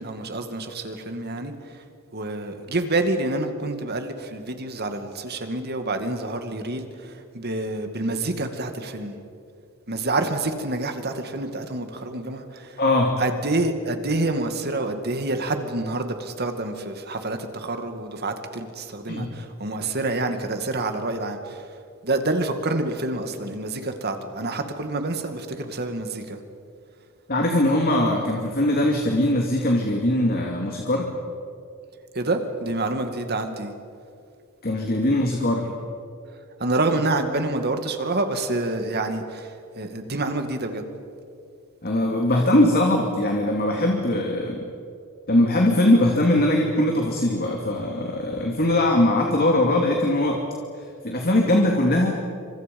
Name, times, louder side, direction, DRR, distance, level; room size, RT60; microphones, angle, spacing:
voice 1, 0.0-1.5 2.1-9.2 9.9-12.8 13.2-21.7 22.0-26.4 32.1-33.7 36.6-40.9, right 2 dB, 50° right, 7 dB, 2.3 m, -27 dB
voice 2, 12.8-13.1 19.1-19.3 27.3-31.1 34.6-35.7 41.8-44.7 45.3-50.4 51.0-52.2, left 1 dB, 45° left, 1 dB, 2.5 m, -21 dB
28.5 x 26.0 x 5.4 m, 2.5 s
head